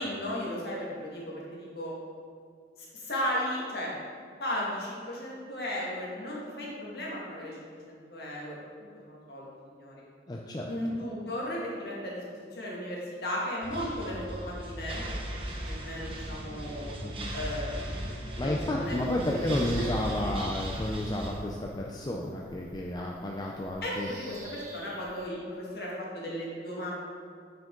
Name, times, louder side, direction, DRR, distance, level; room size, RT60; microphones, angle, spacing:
voice 1, 0.0-1.9 2.8-3.9 4.4-10.0 10.7-16.9 17.3-18.1 18.3-19.0 19.3-19.7 23.8-26.9, left 1 dB, 55° left, -5 dB, 1.8 m, -36 dB
voice 2, 10.3-10.7 17.0-17.3 18.4-24.1, left 1 dB, 20° left, -1 dB, 0.4 m, -31 dB
sound 1, 13.6-21.3, right 1 dB, 30° right, 0.9 m, -37 dB
Bird vocalization bird call bird song, 18.8-25.2, right 2 dB, 45° right, 1.3 m, -51 dB
9.1 x 5.1 x 3.8 m, 2.1 s
head